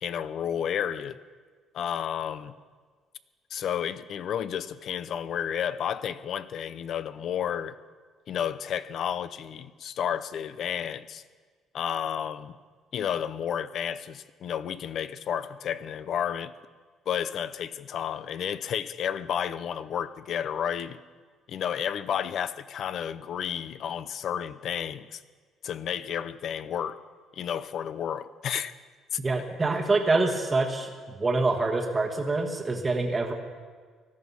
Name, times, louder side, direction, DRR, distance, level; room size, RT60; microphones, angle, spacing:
voice 1, 0.0-1.2 1.7-2.5 3.5-7.8 8.3-11.2 11.7-12.5 12.9-16.5 17.1-21.0 21.5-25.2 25.6-27.0 27.4-28.7 29.1-29.2, left 9 dB, 45° left, 0.6 m, -31 dB
voice 2, 29.2-30.9 31.2-33.3, right 3 dB, 15° right, 1.3 m, -25 dB
19.0 x 13.5 x 5.5 m
cardioid pair, 175°, 0 cm